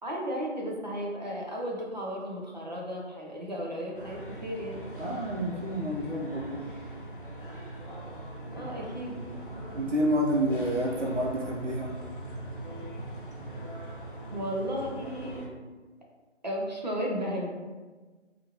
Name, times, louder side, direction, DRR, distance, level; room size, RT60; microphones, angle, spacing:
voice 1, 0.0-4.8 8.5-9.2 14.3-15.5 16.4-17.5, equal, 35° right, -2 dB, 0.5 m, -34 dB
sound 1, 3.9-15.5, right 1 dB, 45° left, 0.5 m, -41 dB
voice 2, 5.0-6.6 8.6-8.7 9.7-11.9, equal, 80° right, -1 dB, 0.8 m, -29 dB
2.9 x 2.5 x 2.7 m, 1.3 s
hypercardioid pair, 175°, 36 cm